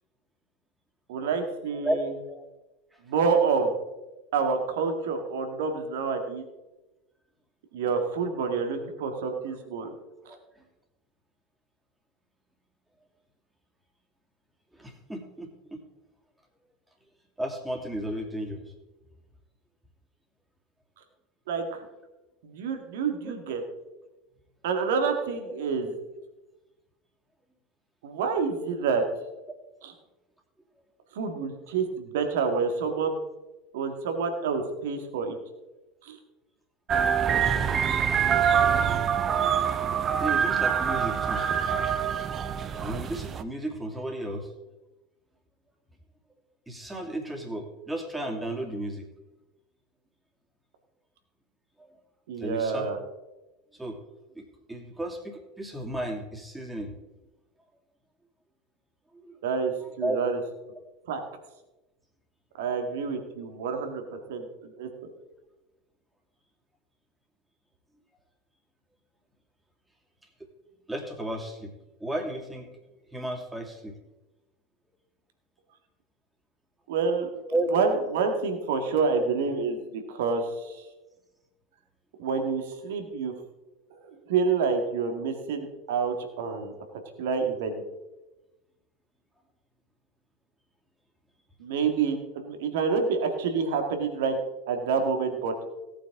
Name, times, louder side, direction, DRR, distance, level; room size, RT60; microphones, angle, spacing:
voice 1, 1.1-2.1 3.0-3.7 4.3-6.4 7.7-9.9 10.3-10.4 21.5-21.8 22.4-23.6 24.6-25.9 28.0-29.0 29.8-29.9 31.1-33.2 33.7-35.4 36.0-36.2 52.3-53.0 59.4-60.4 61.1-61.2 62.6-64.9 76.9-77.3 77.7-80.9 82.2-83.3 83.9-86.7 87.1-87.8 91.6-94.4 94.7-95.6, right 5 dB, 65° right, 5 dB, 2.0 m, -28 dB
voice 2, 14.7-15.8 17.4-18.7 23.2-23.3 40.2-42.0 42.8-44.5 46.7-49.0 51.8-51.9 52.4-52.9 53.8-54.0 54.3-57.0 59.2-59.3 60.0-60.2 70.9-71.7 72.0-72.7 73.1-73.9 77.5-77.8, right 1 dB, 10° right, 2 dB, 2.6 m, -33 dB
sound 1, 36.9-43.4, right 8 dB, 35° right, 0.7 m, -25 dB
17.5 x 8.8 x 3.7 m, 1.0 s
figure-of-eight pair, 80°, 0 cm